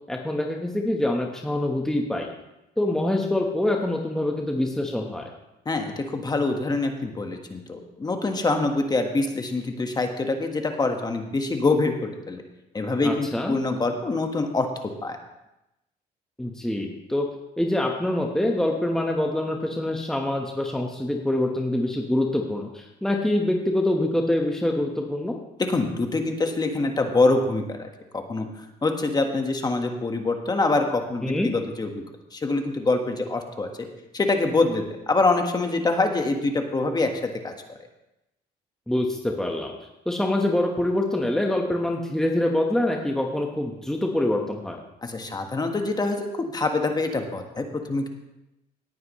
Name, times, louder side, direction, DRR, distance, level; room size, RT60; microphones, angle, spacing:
voice 1, 0.1-2.3 2.8-5.3 13.0-13.5 16.4-17.3 17.6-25.4 31.2-31.5 38.9-39.7 40.0-44.8, left 1 dB, 5° left, 1 dB, 1.2 m, -25 dB
voice 2, 5.6-12.4 12.7-14.7 15.0-15.2 25.7-27.9 28.1-28.5 28.8-31.9 32.3-33.7 34.1-37.5 45.0-48.1, left 3 dB, 25° left, 4 dB, 1.5 m, -25 dB
18.0 x 9.3 x 3.2 m, 0.92 s
cardioid pair, 110°, 17 cm